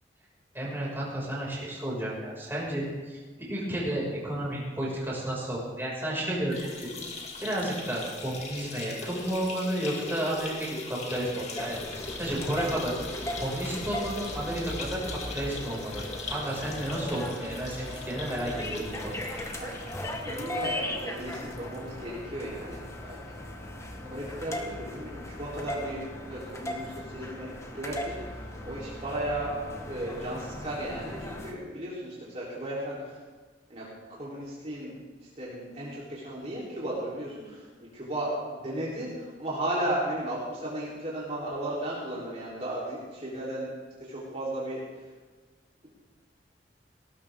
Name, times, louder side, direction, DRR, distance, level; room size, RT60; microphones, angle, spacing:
voice 1, 0.5-6.6 7.4-12.9 13.4-16.0 16.3-19.2, right 1 dB, 15° right, -6 dB, 6.2 m, -32 dB
sound 1, 6.4-21.8 22.2-22.3 22.6-22.7 23.7-23.8, left 3 dB, 40° left, 2.4 m, -40 dB
sound 2, 11.6-31.5, left 1 dB, 15° left, 1.6 m, -38 dB
voice 2, 20.2-23.2 24.1-26.0 26.3-28.2 28.6-29.6 29.9-33.1 33.7-33.8 34.1-34.9 35.4-37.7 37.9-39.1 39.4-43.7 44.1-44.8, right 1 dB, 40° right, -7 dB, 3.9 m, -35 dB
19.0 x 19.0 x 3.8 m, 1.4 s
head